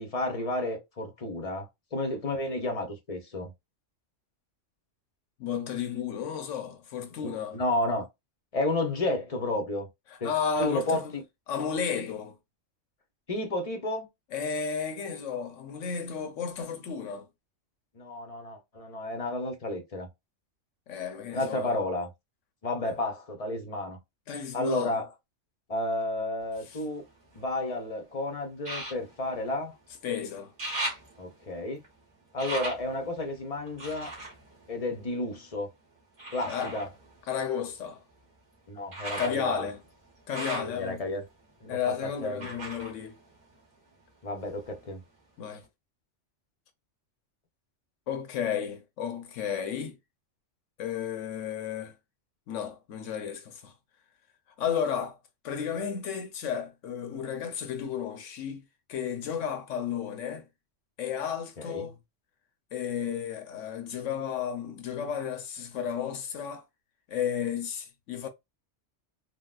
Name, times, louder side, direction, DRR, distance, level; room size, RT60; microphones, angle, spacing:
voice 1, 0.0-3.5 7.2-8.1 8.5-9.9 10.2-10.3 10.6-11.2 13.3-14.1 17.9-20.1 21.3-22.1 22.6-24.0 24.5-25.1 25.7-27.0 27.4-29.7 31.2-31.8 32.3-34.1 34.7-35.7 36.3-36.9 38.7-39.7 40.6-41.2 41.6-42.5 44.2-45.0 61.6-61.9, left 2 dB, 35° left, 0.7 m, -31 dB
voice 2, 5.4-7.6 10.1-11.1 11.5-12.4 14.3-17.3 20.9-21.7 24.3-25.0 26.7-26.8 30.0-30.5 36.4-36.8 37.3-38.0 39.2-39.8 40.3-41.0 41.7-43.2 45.4-45.6 48.1-50.0 50.8-51.9 52.5-53.7 54.6-55.2 55.4-58.6 58.9-60.5 61.0-62.0 62.7-66.6 67.1-68.3, left 7 dB, 85° left, 1.1 m, -33 dB
sound 1, 26.4-27.8 28.6-30.1 30.4-35.5 36.2-44.0 44.3-45.2 45.6-45.7, right 2 dB, 45° right, 1.7 m, -40 dB
3.8 x 2.1 x 2.3 m
omnidirectional pair, 1.2 m